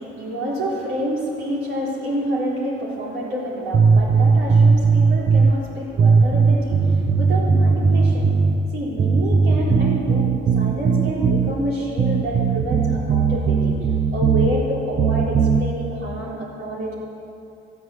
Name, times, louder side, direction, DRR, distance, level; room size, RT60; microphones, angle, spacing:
voice 1, 0.0-8.4 8.7-13.7 14.1-16.9, right 1 dB, 90° right, -5 dB, 4.0 m, -28 dB
sound 1, 3.7-5.5 6.0-8.6 9.0-11.5 12.0-14.5 15.0-15.6, right 5 dB, 40° right, 0.8 m, -17 dB
16.0 x 9.1 x 7.9 m, 2.6 s
cardioid pair, 90°, 20 cm